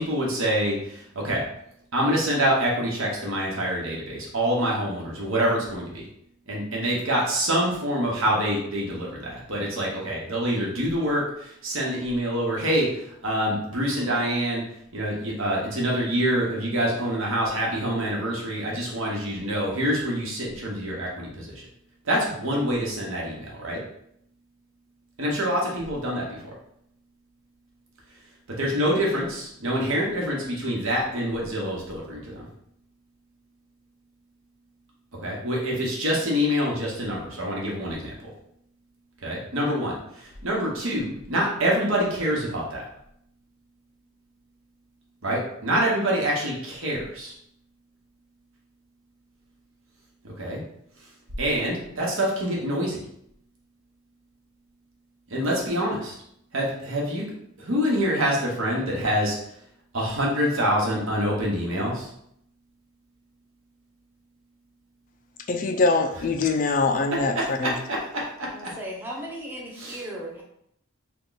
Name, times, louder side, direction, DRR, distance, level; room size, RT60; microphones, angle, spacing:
voice 1, 0.0-1.4 1.9-6.0 6.5-14.6 14.9-21.7 22.0-23.8 25.2-26.5 28.5-32.5 35.2-38.1 39.2-42.8 45.2-47.3 50.2-50.6 51.4-53.0 55.3-56.2 56.5-57.3 57.6-59.4 59.9-62.1 67.3-68.0 69.8-70.0, equal, 80° right, -3 dB, 1.1 m, -26 dB
voice 2, 65.5-67.7, left 3 dB, 40° left, 5 dB, 0.3 m, -23 dB
voice 3, 68.5-70.4, equal, 10° right, -3 dB, 0.6 m, -36 dB
3.6 x 2.3 x 3.9 m, 0.73 s
head